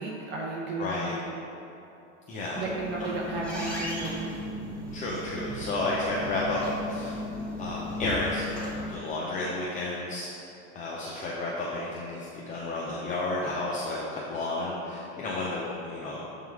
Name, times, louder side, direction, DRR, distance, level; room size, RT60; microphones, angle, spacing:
voice 1, 0.0-1.3 2.5-4.2, right 2 dB, 35° right, -3 dB, 1.1 m, -33 dB
voice 2, 0.8-1.1 2.3-2.6 4.9-6.6 6.9-7.2 7.6-8.4 8.9-10.3 10.7-16.3, left 2 dB, 20° left, -5 dB, 0.7 m, -32 dB
sound 1, 2.4-8.9, left 1 dB, 5° left, 1.4 m, -36 dB
7.3 x 3.7 x 4.7 m, 3.0 s
supercardioid pair, 140°, 35 cm